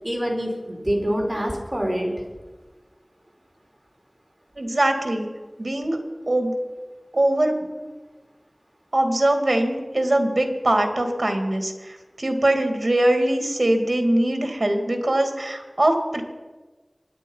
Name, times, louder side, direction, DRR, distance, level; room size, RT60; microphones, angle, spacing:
voice 1, 0.0-2.1, equal, 25° right, 0 dB, 4.3 m, -25 dB
voice 2, 4.6-5.3 5.6-6.0 6.3-6.5 7.1-7.9 8.9-16.2, right 1 dB, 65° right, 5 dB, 2.4 m, -22 dB
24.0 x 10.0 x 5.6 m, 1.3 s
wide cardioid pair, 45°, 0 cm